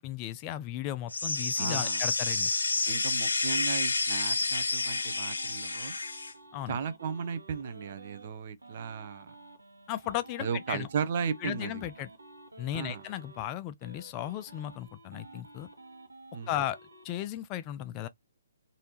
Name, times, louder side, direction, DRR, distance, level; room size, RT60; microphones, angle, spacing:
voice 1, 0.0-2.5 6.5-6.8 9.9-10.9 11.4-12.1 12.6-15.7 16.5-16.8 17.0-18.1, left 12 dB, 25° left, 0.3 m, -35 dB
sound 1, 1.1-6.3, left 3 dB, 70° left, 0.6 m, -29 dB
voice 2, 1.6-2.0 2.9-5.9 6.7-9.3 10.4-11.9 12.7-13.0 16.3-16.5, right 6 dB, 45° right, 0.6 m, -35 dB
sound 2, 3.9-8.3 8.6-13.5 13.8-17.3, right 2 dB, 75° right, 1.0 m, -52 dB
3.3 x 2.6 x 2.8 m
figure-of-eight pair, 130°, 0 cm